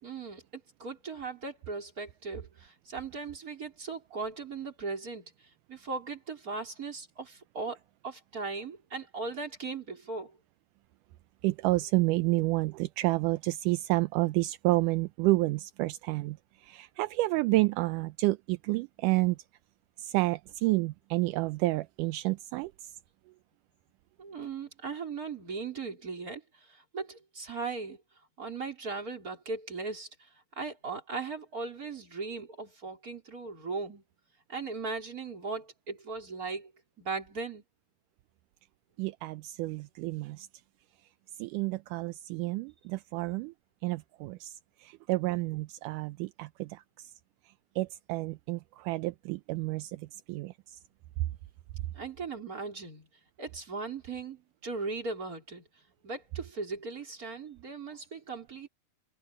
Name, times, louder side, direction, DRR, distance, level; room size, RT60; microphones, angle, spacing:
voice 1, 0.0-5.3 5.7-7.8 8.0-10.4 24.2-28.0 28.4-30.1 30.5-34.0 34.5-36.7 37.0-37.6 51.9-53.1 53.4-55.6 56.0-58.7, right 4 dB, 25° right, 4.6 m, -38 dB
voice 2, 11.4-19.4 20.0-22.9 39.0-40.5 41.4-43.5 43.8-44.5 44.8-47.1 47.8-50.8, right 20 dB, 80° right, 1.9 m, -30 dB
omnidirectional pair, 4.1 m